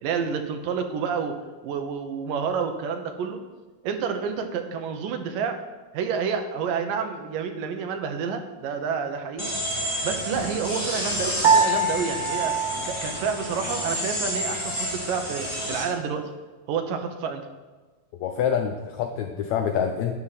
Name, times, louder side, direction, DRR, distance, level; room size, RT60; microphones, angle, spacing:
voice 1, 0.0-3.4 3.8-5.6 5.9-9.5 10.0-12.6 12.9-16.3 16.7-17.5, right 6 dB, 75° right, 6 dB, 2.5 m, -29 dB
sound 1, 9.4-15.8, equal, 10° left, 1.7 m, -30 dB
Piano, 11.4-14.0, right 4 dB, 60° right, 1.4 m, -24 dB
voice 2, 18.2-20.1, left 8 dB, 85° left, 5 dB, 1.6 m, -26 dB
12.0 x 9.4 x 4.1 m, 1.3 s
omnidirectional pair, 4.1 m